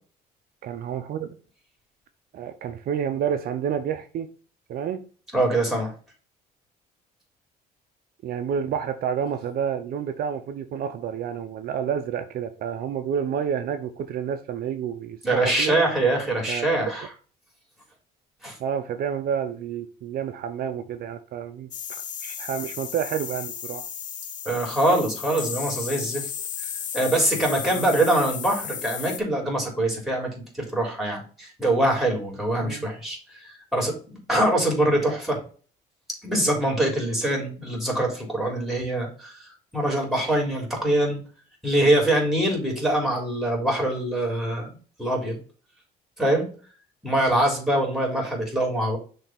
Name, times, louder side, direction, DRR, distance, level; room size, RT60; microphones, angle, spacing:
voice 1, 0.6-1.4 2.3-4.3 4.7-5.0 8.2-15.8 16.5-16.7 18.6-21.7 22.2-23.9 27.8-28.0 32.6-32.9 47.2-47.3, right 8 dB, 60° right, 0.7 m, -29 dB
voice 2, 5.3-5.9 15.2-17.1 18.4-18.6 24.5-26.3 26.9-30.3 30.5-34.0 34.3-35.4 36.2-41.2 41.6-44.7 45.0-45.4 46.2-46.5 47.0-49.0, right 1 dB, ahead, 3.6 m, -24 dB
sound 1, 21.7-29.2, left 8 dB, 50° left, 0.9 m, -34 dB
6.4 x 3.4 x 5.8 m
cardioid pair, 110°, 17 cm